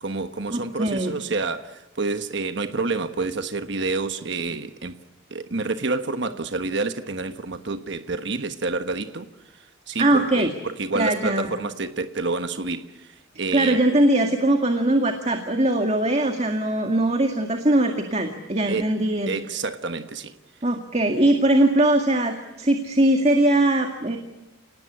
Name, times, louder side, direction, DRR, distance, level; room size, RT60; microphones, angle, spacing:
voice 1, 0.0-5.0 5.3-9.3 9.6-13.8 18.7-18.9 19.3-20.3, right 3 dB, 60° right, 9 dB, 1.3 m, -28 dB
voice 2, 0.5-1.1 10.0-10.5 11.0-11.5 13.5-19.3 20.6-24.2, right 1 dB, 30° right, 5 dB, 2.0 m, -21 dB
30.0 x 19.0 x 9.8 m, 1.0 s
head